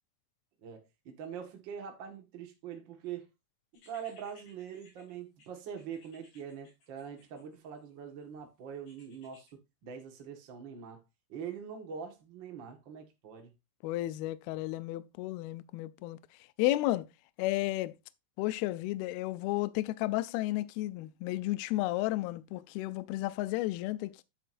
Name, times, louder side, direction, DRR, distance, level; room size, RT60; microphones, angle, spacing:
voice 1, 0.6-3.3 3.9-9.5 9.8-11.0 11.3-13.5, right 7 dB, 70° right, 1.1 m, -43 dB
sound 1, 3.7-7.9 8.9-9.5, left 2 dB, 60° left, 5.0 m, -62 dB
voice 2, 13.8-16.2 16.6-17.1 17.4-17.9 18.4-24.2, left 17 dB, 80° left, 2.3 m, -32 dB
10.0 x 7.5 x 2.6 m
omnidirectional pair, 4.7 m